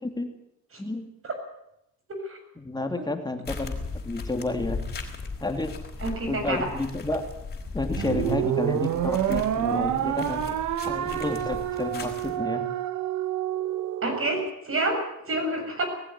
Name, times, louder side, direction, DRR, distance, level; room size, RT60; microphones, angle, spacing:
voice 1, 2.6-3.7 4.0-4.8 5.4-5.7 6.3-7.3 7.7-10.6 10.8-12.7, left 2 dB, 15° left, 5 dB, 2.9 m, -30 dB
sound 1, 3.4-12.4, left 4 dB, 35° left, 4.8 m, -37 dB
voice 2, 6.0-6.7 14.0-15.9, right 2 dB, 45° right, 5 dB, 7.0 m, -29 dB
sound 2, 8.0-14.5, right 11 dB, 75° right, 1.2 m, -28 dB
19.5 x 15.5 x 9.7 m, 0.84 s
cardioid pair, 90°, 30 cm